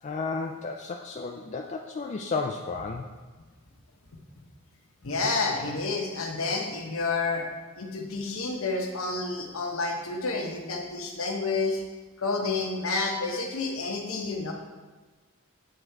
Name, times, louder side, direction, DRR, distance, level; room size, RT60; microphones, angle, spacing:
voice 1, 0.0-3.1, left 4 dB, 30° left, 1 dB, 0.3 m, -33 dB
voice 2, 5.0-7.4 7.8-11.8 12.2-14.5, left 3 dB, 65° left, 1 dB, 1.0 m, -29 dB
8.1 x 3.8 x 4.6 m, 1.3 s
head